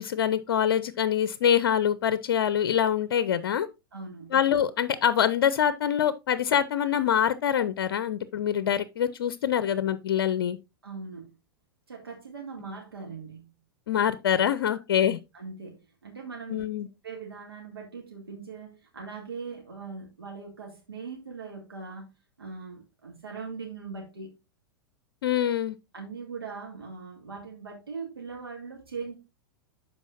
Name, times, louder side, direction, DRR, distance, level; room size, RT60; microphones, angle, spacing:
voice 1, 0.0-3.7 4.3-10.6 13.9-15.2 16.5-16.9 25.2-25.8, left 9 dB, 70° left, 0.6 m, -25 dB
voice 2, 3.9-4.3 10.8-11.4 11.9-13.5 15.0-15.1 15.3-16.6 17.0-22.1 22.4-24.3 25.9-29.1, right 5 dB, 85° right, 2.3 m, -40 dB
12.5 x 4.7 x 2.5 m
hypercardioid pair, 100°, 12 cm